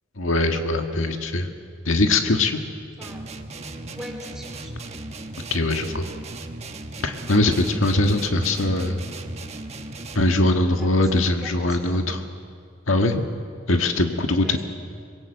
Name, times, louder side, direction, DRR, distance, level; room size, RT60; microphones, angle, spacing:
voice 1, 0.2-1.5 1.9-2.6 5.5-6.1 7.0-9.0 10.2-12.2 12.9-13.3 13.7-14.6, left 2 dB, 85° left, 5 dB, 1.7 m, -21 dB
sound 1, 3.0-10.5, right 2 dB, 35° right, 1.3 m, -37 dB
voice 2, 3.9-4.9 10.7-12.1 14.4-14.6, equal, ahead, 0 dB, 4.5 m, -41 dB
26.5 x 21.5 x 8.0 m, 2.2 s
head